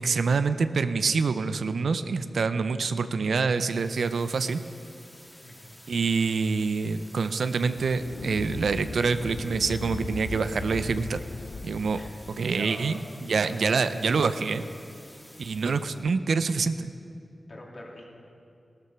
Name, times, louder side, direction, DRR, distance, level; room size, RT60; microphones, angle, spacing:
voice 1, 0.0-4.6 5.9-11.2 11.6-12.0 12.4-14.6 15.4-16.9, right 4 dB, 85° right, 11 dB, 0.5 m, -26 dB
sound 1, 3.4-16.1, equal, 10° left, 1.7 m, -52 dB
voice 2, 5.4-5.8 11.9-12.1 12.5-13.0 13.5-13.8 15.6-15.7 17.5-18.1, left 1 dB, 50° left, -2 dB, 2.9 m, -44 dB
sound 2, 7.7-12.5, left 4 dB, 65° left, 0.4 m, -38 dB
14.5 x 13.0 x 5.8 m, 2.5 s
cardioid pair, 50°, 0 cm